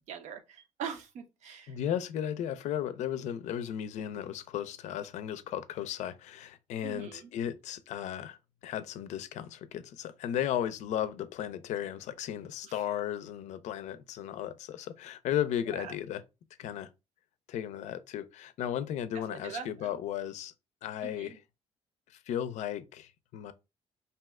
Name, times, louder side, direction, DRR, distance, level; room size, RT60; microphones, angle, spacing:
voice 1, 0.1-1.7 6.8-7.3 12.6-12.7 15.7-15.9 19.4-19.9 21.0-21.4, right 7 dB, 80° right, 0.7 m, -42 dB
voice 2, 1.7-8.4 8.6-16.2 16.6-16.9 17.5-20.5 20.8-21.4 22.3-23.5, left 10 dB, 80° left, 0.4 m, -35 dB
2.6 x 2.2 x 3.5 m
cardioid pair, 110°, 12 cm